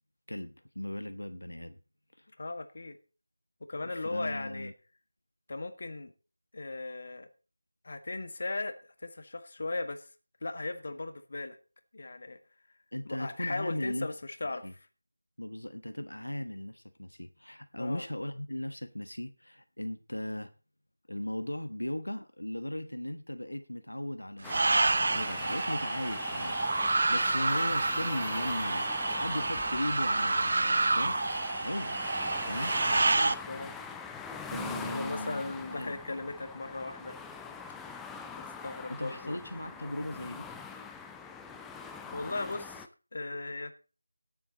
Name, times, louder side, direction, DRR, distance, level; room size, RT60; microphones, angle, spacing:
voice 1, 0.3-1.8 2.1-2.3 3.9-4.7 12.9-14.1 14.6-14.7 15.4-20.5 21.1-32.0 32.5-32.8 34.4-35.4 35.7-35.9 38.9-40.5, left 1 dB, 80° left, 9 dB, 1.1 m, -37 dB
voice 2, 2.4-3.0 3.7-4.7 5.5-6.1 6.5-7.3 7.8-10.1 10.4-11.6 11.9-12.4 13.0-14.7 17.8-18.0 32.9-33.8 34.9-37.2 38.6-39.4 42.1-42.9 43.1-43.7, left 2 dB, 45° left, 8 dB, 1.6 m, -37 dB
sound 1, 24.4-42.9, left 5 dB, 5° left, 0.5 m, -43 dB
sound 2, 24.5-33.3, right 2 dB, 45° right, 0.6 m, -28 dB
17.0 x 7.6 x 4.0 m, 0.35 s
figure-of-eight pair, 165°, 0 cm